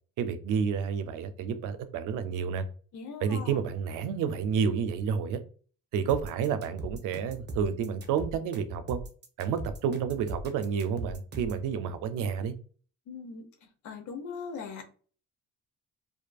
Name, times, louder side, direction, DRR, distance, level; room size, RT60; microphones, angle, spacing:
voice 1, 0.2-2.6 3.2-5.4 5.9-9.0 9.4-12.5, right 7 dB, 90° right, 10 dB, 0.5 m, -30 dB
voice 2, 2.9-3.6 13.1-13.5 13.8-14.8, left 5 dB, 75° left, 5 dB, 0.8 m, -40 dB
sound 1, 6.1-11.7, right 1 dB, 35° right, 0.6 m, -40 dB
2.6 x 2.5 x 2.3 m, 0.40 s
cardioid pair, 90°, 30 cm